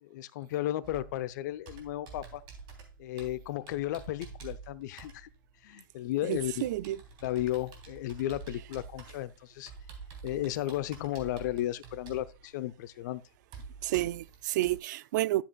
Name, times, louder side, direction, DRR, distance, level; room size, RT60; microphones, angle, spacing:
voice 1, 0.0-2.4 3.0-5.3 5.6-6.7 7.2-9.7 10.2-13.2, left 14 dB, 55° left, 0.7 m, -34 dB
Computer keyboard, 0.8-14.8, right 5 dB, 40° right, 3.3 m, -49 dB
voice 2, 6.2-7.0 13.8-15.4, right 16 dB, 55° right, 0.4 m, -30 dB
12.0 x 7.5 x 2.3 m
hypercardioid pair, 105°, 11 cm